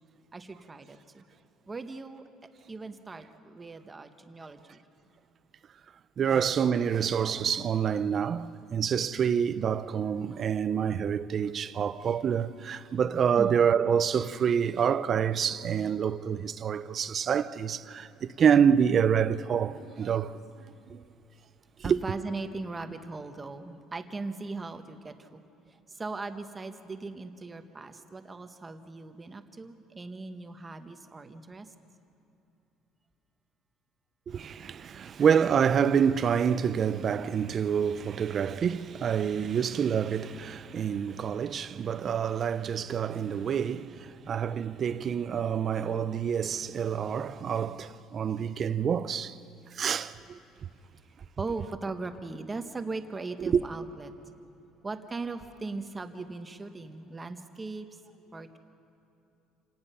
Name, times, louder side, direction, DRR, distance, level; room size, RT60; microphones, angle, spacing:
voice 1, 0.3-1.2 1.7-2.2 2.7-4.8 13.4-13.6 21.8-25.4 25.7-31.7 51.4-54.1 54.8-58.0 58.3-58.6, right 3 dB, 15° right, 0.9 m, -39 dB
voice 2, 6.2-20.4 20.9-21.0 21.8-22.0 34.3-49.4 49.7-50.4 53.5-53.6, right 7 dB, 30° right, 0.5 m, -27 dB
28.0 x 18.5 x 5.5 m
cardioid pair, 160°, 0 cm